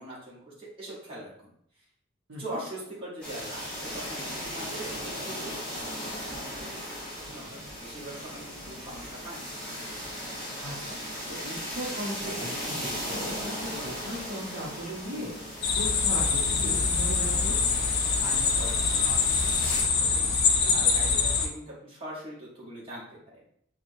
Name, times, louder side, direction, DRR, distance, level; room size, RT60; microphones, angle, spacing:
voice 1, 0.0-1.5 1.8-1.9 2.4-4.9 5.2-5.6 6.2-9.5 18.2-23.4, right 1 dB, 25° right, -7 dB, 1.1 m, -42 dB
voice 2, 2.3-2.6 7.4-7.6 10.6-10.9 11.3-17.6, equal, 65° right, -4 dB, 0.9 m, -38 dB
sound 1, 3.2-19.8, equal, 5° left, 1.1 m, -37 dB
sound 2, 15.6-21.5, left 5 dB, 50° left, 0.4 m, -24 dB
4.4 x 2.3 x 2.7 m, 0.71 s
head